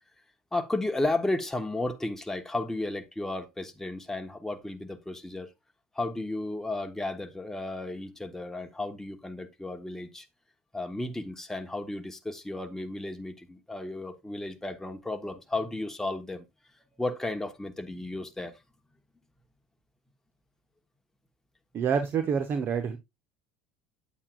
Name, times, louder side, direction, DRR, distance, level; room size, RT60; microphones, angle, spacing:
voice 1, 0.5-5.5 5.9-10.3 10.7-16.4 17.0-18.6, left 2 dB, 5° left, 1.1 m, -33 dB
voice 2, 21.7-23.0, right 6 dB, 45° right, 1.0 m, -27 dB
8.5 x 8.3 x 2.4 m
hypercardioid pair, 70°, 5 cm